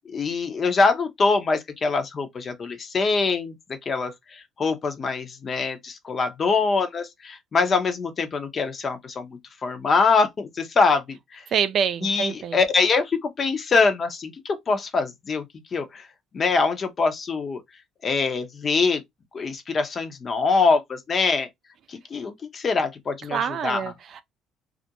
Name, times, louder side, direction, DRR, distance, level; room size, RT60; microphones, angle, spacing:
voice 1, 0.1-11.4 12.0-15.4 15.7-16.1 16.3-17.6 18.0-19.0 19.3-21.5 21.9-23.8, left 4 dB, 45° left, 0.7 m, -24 dB
voice 2, 11.5-12.6 23.3-24.2, right 7 dB, 55° right, 0.3 m, -26 dB
2.4 x 2.1 x 2.8 m
hypercardioid pair, 65°, 0 cm